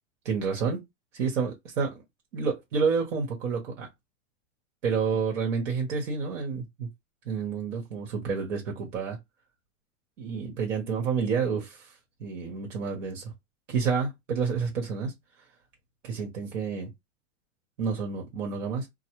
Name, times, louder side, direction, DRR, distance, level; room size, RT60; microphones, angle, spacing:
voice 1, 0.2-0.8 1.1-2.0 2.3-3.9 4.8-6.9 7.3-9.2 10.2-11.9 12.2-13.3 13.7-15.1 16.0-16.9 17.8-18.9, right 5 dB, 75° right, 1.3 m, -29 dB
3.0 x 2.1 x 3.0 m
supercardioid pair, 145°, 37 cm